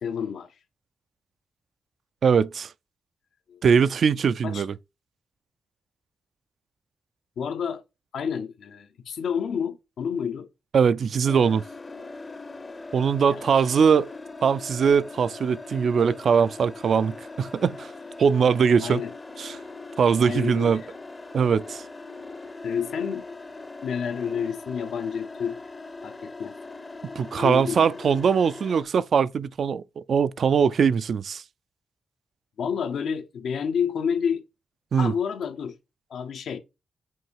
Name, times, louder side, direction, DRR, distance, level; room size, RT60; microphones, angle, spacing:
voice 1, 0.0-0.5 3.5-3.6 4.4-4.6 7.4-7.8 8.1-10.5 13.3-13.6 18.8-19.1 20.2-20.9 22.6-23.3 23.8-25.6 26.0-26.6 27.4-27.9 32.6-34.4 35.0-35.8 36.1-36.6, left 7 dB, 80° left, 0.9 m, -29 dB
voice 2, 2.2-2.7 3.6-4.7 10.7-11.6 12.9-14.1 14.4-17.9 18.2-19.0 19.4-19.6 20.0-20.8 21.3-21.8 27.2-31.4 34.9-35.1, right 6 dB, 60° right, 0.4 m, -21 dB
sound 1, 11.2-28.8, left 3 dB, 25° left, 0.6 m, -41 dB
7.6 x 2.7 x 4.7 m
wide cardioid pair, 120°, 0 cm